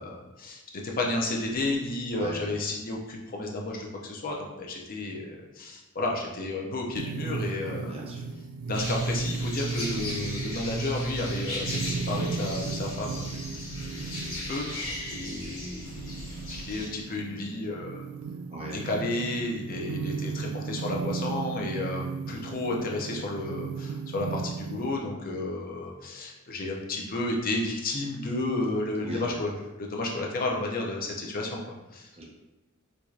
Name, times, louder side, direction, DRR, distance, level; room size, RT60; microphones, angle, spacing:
voice 1, 0.0-7.9 8.7-13.6 14.3-18.1 18.7-29.5 29.8-32.1, left 2 dB, 40° left, -1 dB, 0.6 m, -32 dB
voice 2, 2.2-2.6 7.8-8.2 18.5-18.9 29.0-29.4 32.1-32.2, right 1 dB, 30° right, -3 dB, 0.8 m, -39 dB
sound 1, 7.0-25.0, right 4 dB, 80° right, 0.3 m, -35 dB
sound 2, 8.7-16.9, left 1 dB, 65° left, 1.3 m, -37 dB
4.5 x 2.7 x 2.4 m, 1.0 s
head